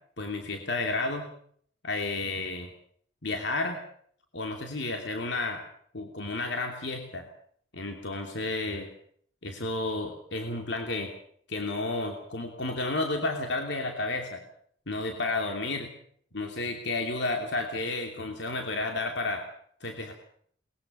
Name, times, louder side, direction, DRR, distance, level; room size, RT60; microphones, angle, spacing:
voice 1, 0.2-1.3 1.8-2.7 3.2-3.8 4.3-5.6 5.9-7.3 7.7-8.9 9.4-11.1 11.5-14.4 14.9-15.9 16.3-19.4 19.8-20.1, left 2 dB, 60° left, 3 dB, 2.9 m, -31 dB
22.0 x 21.0 x 6.8 m, 0.62 s
head